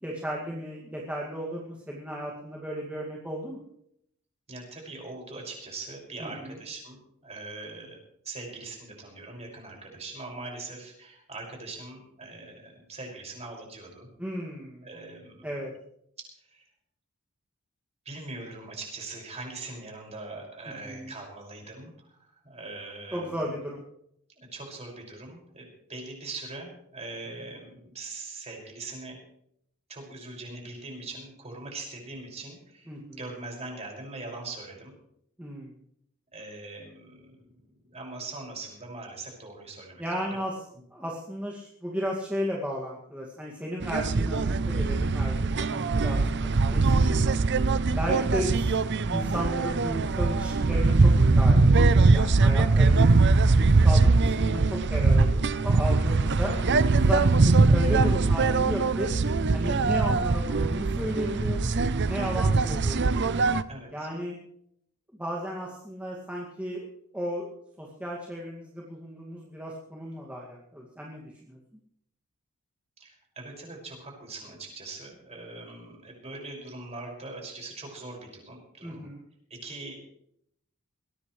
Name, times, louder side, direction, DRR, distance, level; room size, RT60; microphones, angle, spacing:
voice 1, 0.0-3.6 6.2-6.6 14.2-14.9 15.4-15.7 20.8-21.2 23.1-23.8 27.4-27.5 32.9-33.2 35.4-35.7 40.0-40.5 40.9-47.4 47.9-48.7 49.1-53.1 53.5-56.5 56.9-59.1 59.5-61.7 62.1-63.3 63.9-64.3 65.2-66.9 67.1-67.5 67.8-71.6 78.8-79.2, equal, 5° right, -3 dB, 2.2 m, -34 dB
voice 2, 4.5-14.1 14.8-15.4 16.2-16.6 18.0-23.5 24.4-29.2 29.9-34.9 36.3-37.6 37.9-40.3 56.4-56.6 62.2-62.5 63.7-64.1 73.0-79.1 79.5-80.1, right 3 dB, 30° right, 0 dB, 6.0 m, -41 dB
sound 1, 43.8-63.6, right 3 dB, 55° right, 0.7 m, -22 dB
21.5 x 17.5 x 3.3 m, 0.71 s
head